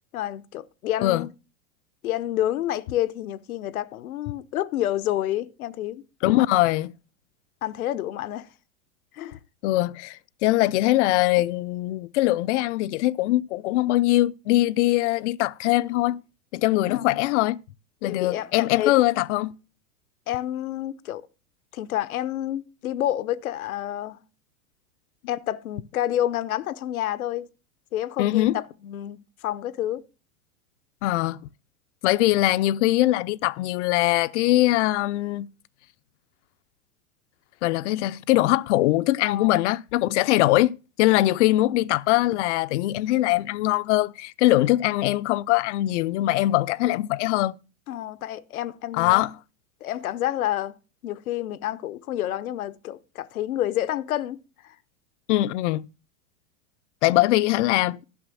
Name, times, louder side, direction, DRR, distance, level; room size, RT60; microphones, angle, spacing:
voice 1, 0.1-1.3 2.0-6.0 7.6-8.5 9.1-9.4 16.9-17.0 18.0-19.0 20.3-21.3 21.7-24.2 25.3-27.5 27.9-30.0 39.2-39.7 47.9-49.2 49.8-50.8 51.0-54.4, left 12 dB, 90° left, 0.8 m, -29 dB
voice 2, 6.2-6.9 9.6-16.2 16.5-17.6 18.0-19.5 28.2-28.6 31.0-31.4 32.0-35.5 37.6-47.6 48.9-49.3 55.3-55.9 57.0-58.0, left 16 dB, 55° left, 0.6 m, -22 dB
11.5 x 6.1 x 6.1 m
supercardioid pair, 135°, 42 cm